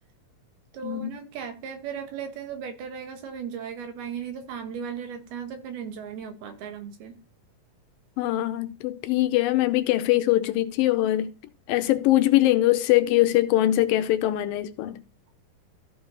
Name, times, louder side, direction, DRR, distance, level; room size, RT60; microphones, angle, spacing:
voice 1, 0.7-7.1, right 7 dB, 90° right, 3.4 m, -36 dB
voice 2, 8.2-11.3 11.7-15.0, left 15 dB, 80° left, 2.3 m, -22 dB
14.0 x 5.0 x 4.0 m
omnidirectional pair, 4.3 m